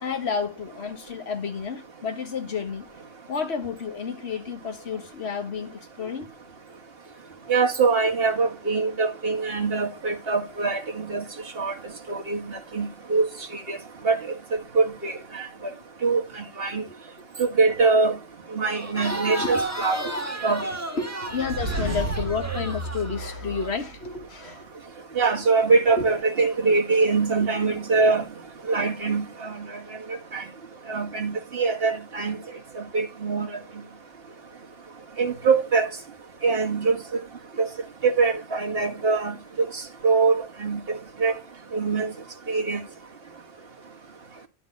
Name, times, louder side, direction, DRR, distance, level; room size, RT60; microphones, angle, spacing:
voice 1, 0.0-6.3 15.7-15.8 16.9-17.3 19.1-19.5 20.0-20.2 20.9-24.7 26.0-26.1, left 5 dB, 60° left, 1.8 m, -31 dB
voice 2, 7.5-11.2 11.6-11.7 12.1-13.3 13.5-13.8 14.0-14.2 14.8-15.5 16.0-16.8 17.4-18.1 18.5-20.0 20.4-20.7 25.2-28.2 28.7-29.6 30.3-30.4 30.9-32.4 32.8-33.5 35.2-35.9 36.4-37.0 37.6-37.7 38.0-39.3 40.0-41.3 41.7-42.1 42.5-42.8, right 4 dB, 50° right, 2.0 m, -23 dB
Crowd, 18.7-23.7, right 1 dB, 15° right, 1.7 m, -33 dB
sound 1, 21.3-24.2, right 2 dB, 70° right, 2.0 m, -32 dB
12.0 x 4.1 x 6.5 m
omnidirectional pair, 1.3 m